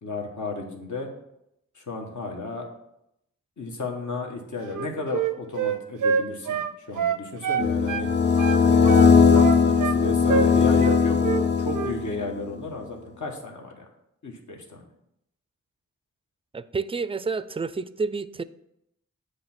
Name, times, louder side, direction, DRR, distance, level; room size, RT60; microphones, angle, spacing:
voice 1, 0.0-1.1 1.7-2.7 3.6-8.1 8.6-13.8 14.2-14.8, left 3 dB, 70° left, 1 dB, 1.3 m, -33 dB
Wind instrument woodwind instrument, 4.6-8.1 8.4-10.0 10.3-10.5 10.8-11.5 11.7-12.0, right 7 dB, 90° right, 0.5 m, -26 dB
sound 1, 7.6-12.2, left 5 dB, 35° left, 0.5 m, -19 dB
voice 2, 16.5-18.4, right 4 dB, 20° right, 15 dB, 0.3 m, -29 dB
8.0 x 3.3 x 5.9 m, 0.81 s
cardioid pair, 50°, 31 cm